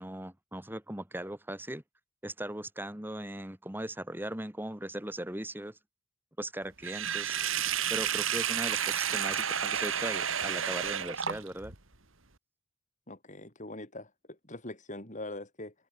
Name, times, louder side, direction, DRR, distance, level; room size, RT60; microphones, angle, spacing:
voice 1, 0.0-1.8 2.2-5.8 6.4-7.4 7.9-11.7, right 1 dB, 10° right, 2.1 m, -39 dB
Sink (filling or washing), 6.8-11.8, right 9 dB, 70° right, 3.5 m, -31 dB
voice 2, 13.1-14.1 14.5-15.7, left 2 dB, 35° left, 7.5 m, -42 dB
head